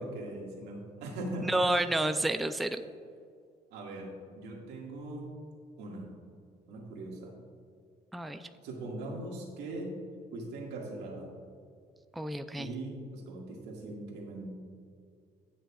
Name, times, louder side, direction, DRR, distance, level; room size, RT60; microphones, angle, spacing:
voice 1, 0.0-1.6 3.7-5.3 5.8-6.1 6.7-7.3 8.6-9.9 10.3-11.3 12.5-14.5, right 2 dB, 90° right, -1 dB, 1.9 m, -40 dB
voice 2, 1.4-2.8 8.1-8.5 12.2-12.7, right 1 dB, ahead, 9 dB, 0.4 m, -30 dB
19.0 x 6.3 x 2.4 m, 2.2 s
cardioid pair, 110°, 17 cm